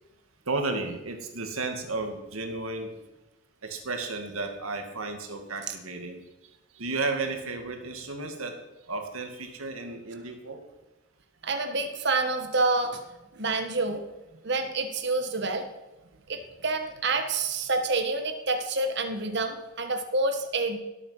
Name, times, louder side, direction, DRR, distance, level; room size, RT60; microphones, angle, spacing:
voice 1, 0.5-2.9 3.6-6.2 6.8-8.6 8.9-10.6, right 3 dB, 90° right, 5 dB, 2.3 m, -33 dB
voice 2, 11.4-13.0 13.3-14.0 14.4-15.7 16.3-20.8, right 3 dB, 55° right, 6 dB, 1.6 m, -28 dB
17.5 x 8.6 x 5.8 m, 1.0 s
head